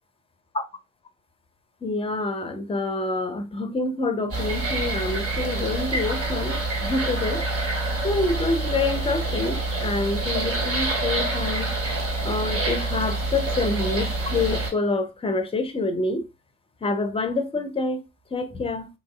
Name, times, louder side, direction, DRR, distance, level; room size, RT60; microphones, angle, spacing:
voice 1, 1.8-7.4 8.0-11.7 12.2-16.3 16.8-18.0 18.3-18.9, left 3 dB, 15° left, 0.5 m, -27 dB
sound 1, 4.3-14.7, right 2 dB, 35° right, 1.5 m, -27 dB
3.1 x 2.6 x 2.3 m
figure-of-eight pair, 55°, 39 cm